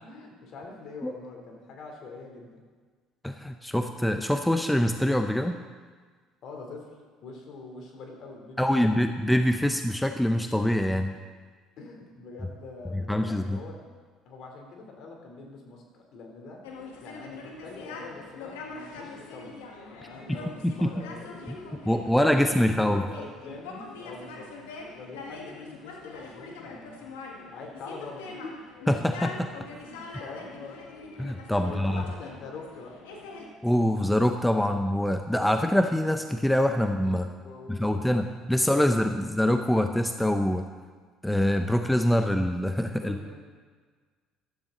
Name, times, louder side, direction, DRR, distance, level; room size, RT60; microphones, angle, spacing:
voice 1, 0.0-2.6 6.4-6.9 7.2-9.1 11.8-13.9 14.2-16.6 17.0-19.6 19.9-24.5 24.9-27.1 27.4-28.6 29.8-30.8 31.6-32.9 37.2-38.3 42.9-43.4, left 3 dB, 60° left, 1 dB, 3.4 m, -44 dB
voice 2, 3.2-5.6 8.6-11.1 13.1-13.6 20.3-20.4 20.6-20.9 21.9-23.0 28.9-29.5 31.2-32.0 33.6-37.3 37.7-40.7 41.2-43.2, left 1 dB, 5° left, 6 dB, 0.9 m, -24 dB
sound 1, 16.6-33.5, left 3 dB, 85° left, 1.9 m, -43 dB
14.5 x 13.0 x 4.0 m, 1.5 s
hypercardioid pair, 70°, 0 cm